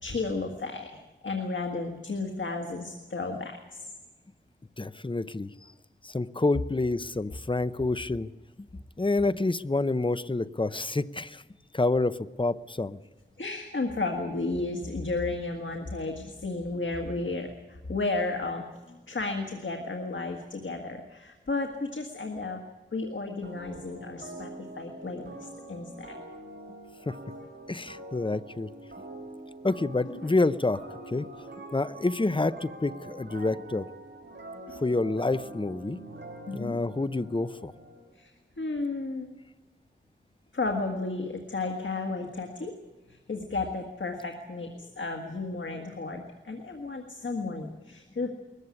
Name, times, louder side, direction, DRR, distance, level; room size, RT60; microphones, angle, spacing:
voice 1, 0.0-3.9 13.4-22.6 22.9-24.5 24.8-26.1 30.0-30.3 32.2-32.3 34.7-34.8 36.5-36.8 38.2-38.3 38.6-39.3 40.5-42.7 43.1-48.3, left 3 dB, 85° left, 3 dB, 1.8 m, -33 dB
voice 2, 4.8-5.5 6.0-8.3 8.7-11.4 11.7-13.0 27.1-27.2 27.7-28.7 29.6-30.8 31.1-31.3 31.7-33.9 34.8-36.0 36.5-37.7, left 2 dB, 25° left, 14 dB, 0.7 m, -28 dB
sound 1, 23.4-38.0, right 2 dB, 70° right, 4.6 m, -45 dB
20.5 x 15.0 x 9.8 m, 1.2 s
wide cardioid pair, 70°, 19 cm